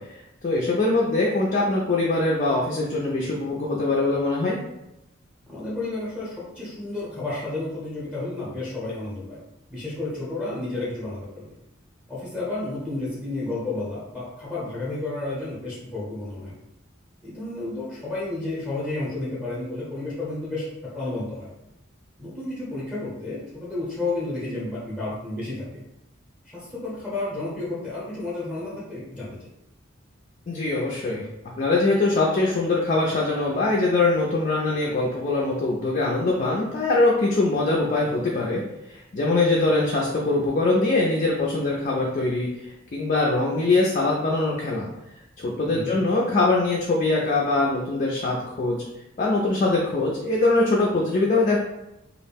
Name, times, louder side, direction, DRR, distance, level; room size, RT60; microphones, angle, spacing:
voice 1, 0.0-4.6 30.5-31.3 31.6-38.6 38.9-44.9 45.4-48.9 49.2-51.6, left 2 dB, 35° left, -3 dB, 0.3 m, -23 dB
voice 2, 5.5-9.4 9.7-11.5 12.1-16.5 17.2-21.5 22.2-25.8 26.4-29.5 45.6-46.0, left 2 dB, 5° right, -9 dB, 0.7 m, -31 dB
2.4 x 2.0 x 3.3 m, 0.90 s
head